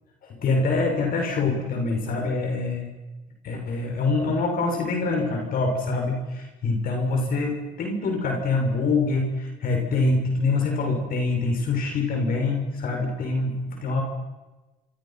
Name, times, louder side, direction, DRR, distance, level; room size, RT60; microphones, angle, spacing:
voice 1, 0.2-2.9 3.4-14.0, left 3 dB, 60° left, 2 dB, 6.7 m, -25 dB
28.0 x 26.0 x 6.0 m, 1.1 s
cardioid pair, 110°, 17 cm